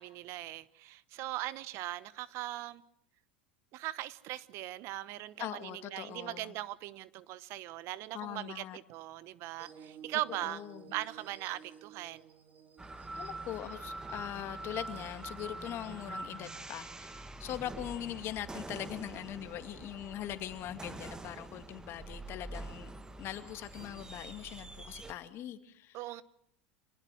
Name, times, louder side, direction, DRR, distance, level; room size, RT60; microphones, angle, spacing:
voice 1, 0.0-2.8 3.7-10.6 10.9-12.3 25.9-26.2, right 16 dB, 55° right, 1.1 m, -40 dB
voice 2, 5.4-6.5 8.1-8.8 10.4-10.9 13.2-22.9 23.2-26.0, left 12 dB, 45° left, 2.3 m, -41 dB
sound 1, 9.6-15.6, right 7 dB, 30° right, 3.7 m, -55 dB
sound 2, 12.8-25.1, right 2 dB, 10° right, 1.8 m, -45 dB
26.5 x 19.5 x 7.8 m
hypercardioid pair, 95°, 6 cm